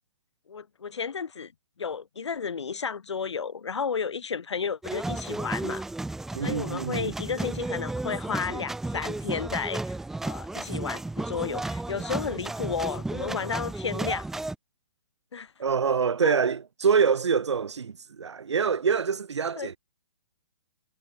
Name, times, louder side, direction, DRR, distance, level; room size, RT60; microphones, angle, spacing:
voice 1, 0.5-1.5 1.8-5.8 6.3-9.9 10.2-14.3 15.3-15.5 16.2-16.4 19.6-19.8, left 6 dB, 90° left, 3.0 m, -32 dB
sound 1, 4.8-14.5, right 2 dB, 5° right, 0.8 m, -33 dB
voice 2, 6.3-7.1 15.6-19.8, right 6 dB, 90° right, 2.0 m, -25 dB
hypercardioid pair, 155°, 14 cm